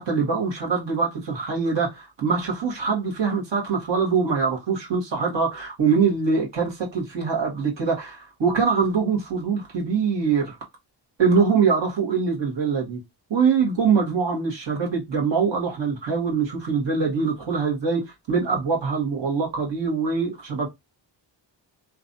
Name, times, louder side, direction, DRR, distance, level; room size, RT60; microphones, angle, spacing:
voice 1, 0.0-10.6 11.2-13.0 13.3-20.7, right 5 dB, 80° right, 1.5 m, -23 dB
2.9 x 2.5 x 2.6 m
wide cardioid pair, 140°, 43 cm